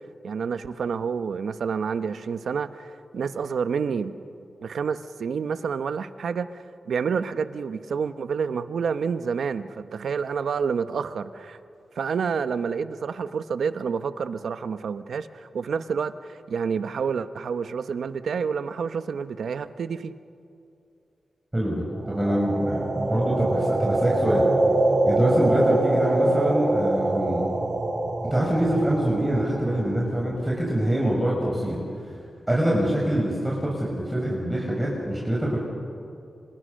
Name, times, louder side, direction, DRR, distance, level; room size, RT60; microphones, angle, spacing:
voice 1, 0.2-4.1 4.6-11.6 12.0-20.1, right 6 dB, 80° right, 11 dB, 1.0 m, -29 dB
voice 2, 21.5-24.5 25.0-27.4 28.3-31.8 32.5-35.6, right 1 dB, 15° right, -3 dB, 5.7 m, -24 dB
sound 1, 22.1-30.1, right 2 dB, 40° right, 3.3 m, -24 dB
29.0 x 26.5 x 6.5 m, 2.5 s
cardioid pair, 75°, 0 cm